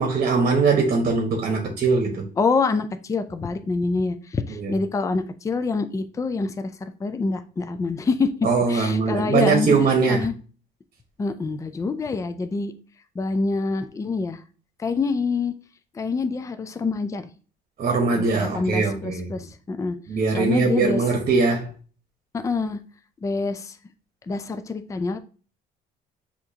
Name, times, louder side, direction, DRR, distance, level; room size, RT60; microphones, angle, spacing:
voice 1, 0.0-2.3 4.5-4.7 8.4-10.3 17.8-19.3 20.1-21.7, right 4 dB, 45° right, 1.1 m, -21 dB
voice 2, 2.4-8.3 8.7-9.7 10.1-10.4 11.2-12.7 13.2-14.4 14.8-15.5 15.9-17.3 18.2-20.0 20.3-21.0 22.3-22.8 23.2-23.8 24.3-25.2, left 4 dB, 20° left, 0.4 m, -26 dB
6.2 x 2.9 x 2.8 m
cardioid pair, 110°, 17 cm